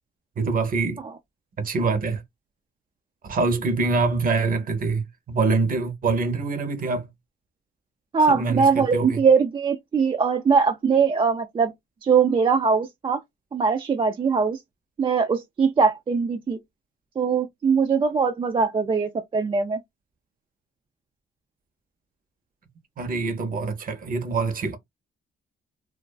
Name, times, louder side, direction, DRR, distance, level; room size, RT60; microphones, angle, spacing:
voice 1, 0.4-1.0 1.6-2.2 3.2-7.1 8.3-9.2 23.0-24.8, right 3 dB, 45° right, 0.7 m, -25 dB
voice 2, 8.1-11.7 12.0-13.2 13.5-14.6 15.0-16.6 17.2-19.8, right 5 dB, 25° right, 0.3 m, -21 dB
2.4 x 2.3 x 2.2 m
cardioid pair, 90°, 20 cm